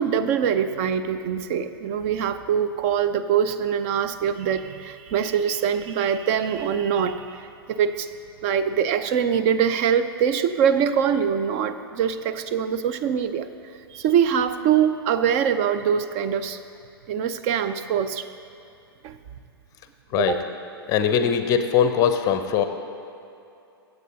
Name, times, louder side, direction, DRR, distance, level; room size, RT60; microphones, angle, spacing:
voice 1, 0.0-8.1 8.4-13.5 13.9-16.6 17.1-18.2 19.0-19.2 20.2-20.4, right 8 dB, 35° right, 10 dB, 0.5 m, -23 dB
voice 2, 20.9-22.6, left 8 dB, 25° left, 8 dB, 0.6 m, -21 dB
23.5 x 7.9 x 2.8 m, 2.7 s
figure-of-eight pair, 105°, 13 cm